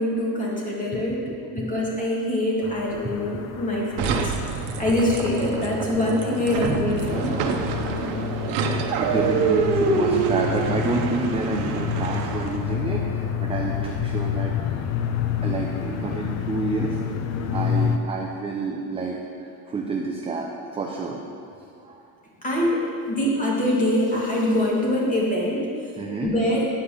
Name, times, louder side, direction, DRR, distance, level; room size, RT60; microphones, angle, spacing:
voice 1, 0.0-1.2 1.5-4.3 4.8-7.3 22.4-25.7 26.2-26.7, left 1 dB, 20° left, -4 dB, 2.0 m, -24 dB
voice 2, 0.9-1.7 3.0-3.2 4.7-4.8 8.9-14.8 15.4-17.0 17.5-21.2 21.8-22.0 26.0-26.3, right 3 dB, 15° right, -1 dB, 0.6 m, -29 dB
sound 1, 2.6-18.0, left 8 dB, 40° left, 0.6 m, -29 dB
sound 2, 4.0-12.7, right 5 dB, 85° right, 1.0 m, -26 dB
10.0 x 5.0 x 7.2 m, 2.5 s
cardioid pair, 150°, 40 cm